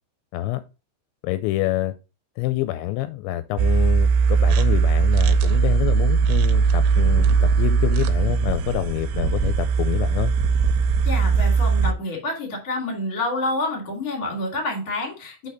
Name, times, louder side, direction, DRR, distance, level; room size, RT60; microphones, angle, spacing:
voice 1, 0.3-0.6 1.2-1.9 2.4-10.3, left 16 dB, 85° left, 11 dB, 2.8 m, -27 dB
sound 1, 3.6-11.9, right 5 dB, 80° right, 2.9 m, -19 dB
voice 2, 11.0-15.5, left 2 dB, 25° left, 0 dB, 2.1 m, -28 dB
6.4 x 5.5 x 3.9 m, 0.30 s
omnidirectional pair, 5.4 m